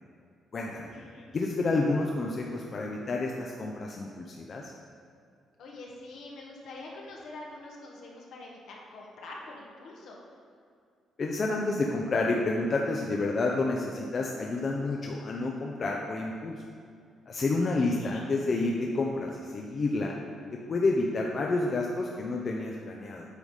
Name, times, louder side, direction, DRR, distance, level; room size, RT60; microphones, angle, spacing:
voice 1, 0.7-1.3 5.6-10.2 17.6-18.2, left 2 dB, 75° left, -2 dB, 1.4 m, -45 dB
voice 2, 1.3-4.7 11.2-16.6 17.3-20.2 20.5-23.3, left 3 dB, 45° left, 0 dB, 0.6 m, -29 dB
8.2 x 4.1 x 5.0 m, 2.3 s
cardioid pair, 90°, 0 cm